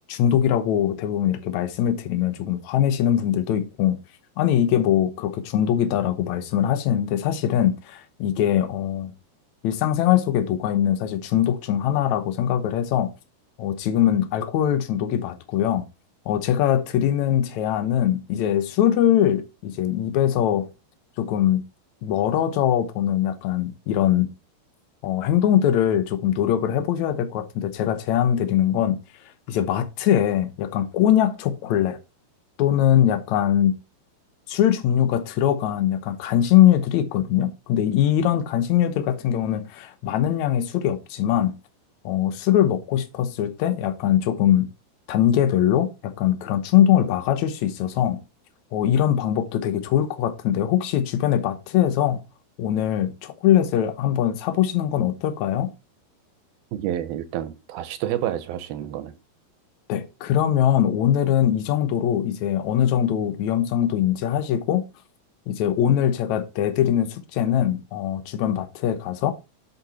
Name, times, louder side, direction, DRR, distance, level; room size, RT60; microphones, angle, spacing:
voice 1, 0.1-4.0 4.4-9.1 9.6-13.1 13.6-15.8 16.2-20.7 21.2-21.6 22.0-24.3 25.0-29.0 29.5-32.0 32.6-33.7 34.5-41.5 42.0-44.7 45.1-48.2 48.7-52.2 52.6-55.7 59.9-64.9 65.5-69.3, left 10 dB, 80° left, 1.6 m, -22 dB
voice 2, 56.7-59.1, right 11 dB, 75° right, 2.6 m, -29 dB
11.0 x 6.6 x 4.2 m
omnidirectional pair, 4.7 m